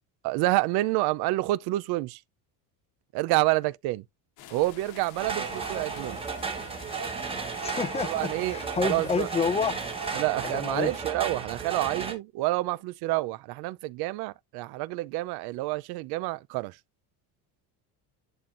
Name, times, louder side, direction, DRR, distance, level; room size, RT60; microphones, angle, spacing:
voice 1, 0.2-2.2 3.1-4.0 4.5-6.2 8.0-9.3 10.1-16.8, right 19 dB, 65° right, 0.6 m, -28 dB
sound 1, 4.4-10.3, left 12 dB, 60° left, 1.3 m, -48 dB
sound 2, 5.2-12.1, right 5 dB, 15° right, 1.4 m, -34 dB
voice 2, 7.6-9.8 10.4-10.9, left 5 dB, 15° left, 0.5 m, -29 dB
11.0 x 4.3 x 2.5 m
cardioid pair, 170°, 42 cm